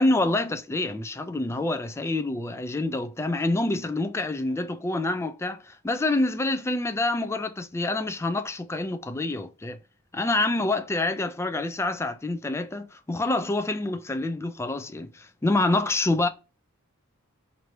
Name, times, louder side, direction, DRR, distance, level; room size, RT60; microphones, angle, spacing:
voice 1, 0.0-9.8 10.1-16.3, left 2 dB, 10° left, 0.3 m, -27 dB
3.1 x 2.6 x 4.3 m
head